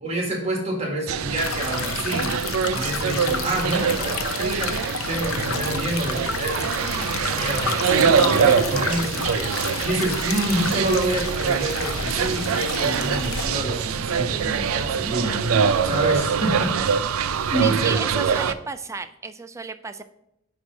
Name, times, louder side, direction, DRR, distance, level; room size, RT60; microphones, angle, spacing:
voice 1, 0.0-2.4 2.7-4.7 5.1-9.5 9.8-15.4 15.8-16.8 17.5-17.8, right 1 dB, 30° right, 0 dB, 1.8 m, -27 dB
sound 1, 1.1-18.5, right 6 dB, 85° right, 0.4 m, -24 dB
sound 2, 1.4-13.5, left 7 dB, 85° left, 0.7 m, -31 dB
sound 3, 9.6-16.0, right 1 dB, 5° left, 2.8 m, -44 dB
voice 2, 17.6-20.0, right 4 dB, 15° right, 10 dB, 0.3 m, -33 dB
9.4 x 3.3 x 5.2 m, 0.82 s
head